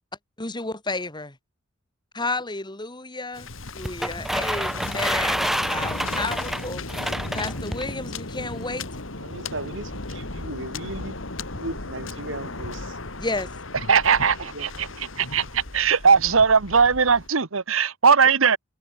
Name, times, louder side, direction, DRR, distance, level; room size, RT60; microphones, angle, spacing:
voice 1, 0.4-1.3 2.1-3.5 3.7-6.8 7.3-8.9 13.2-13.5, left 2 dB, 20° left, 4.9 m, -31 dB
Waves surf, 3.3-17.3, left 2 dB, 70° left, 3.0 m, -36 dB
sound 1, 3.8-7.9, equal, ahead, 0.7 m, -28 dB
voice 2, 9.2-11.2 11.6-13.0 14.4-15.1 15.4-15.5, right 2 dB, 65° right, 5.4 m, -37 dB
voice 3, 13.9-18.6, right 6 dB, 90° right, 1.2 m, -19 dB
head